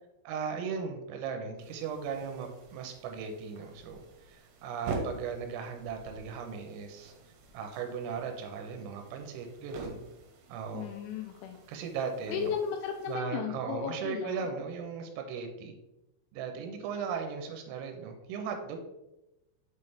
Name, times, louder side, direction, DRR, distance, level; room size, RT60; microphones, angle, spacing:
voice 1, 0.2-7.1 7.5-10.0 10.5-10.9 11.7-12.5 13.1-15.7 16.3-18.8, right 6 dB, 85° right, 5 dB, 3.3 m, -37 dB
sound 1, 1.6-13.2, right 3 dB, 70° right, 3.0 m, -46 dB
voice 2, 10.7-11.6 12.3-14.4, left 7 dB, 85° left, 4 dB, 2.8 m, -35 dB
7.4 x 5.5 x 3.2 m, 0.97 s
omnidirectional pair, 5.9 m